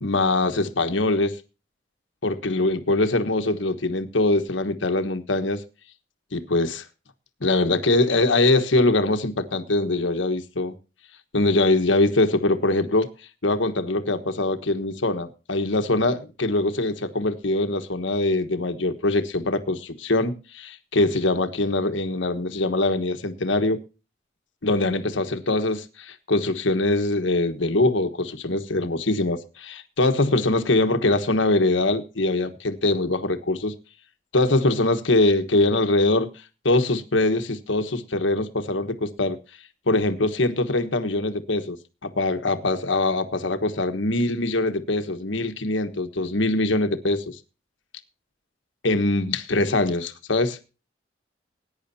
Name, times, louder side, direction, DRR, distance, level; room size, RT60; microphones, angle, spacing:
voice 1, 0.0-1.4 2.2-5.6 6.3-6.8 7.4-10.7 11.3-13.1 13.4-23.8 24.6-33.7 34.3-36.3 36.6-39.4 39.9-41.8 42.0-47.4 48.8-50.6, left 2 dB, 85° left, 1.3 m, -23 dB
20.0 x 10.0 x 2.8 m
head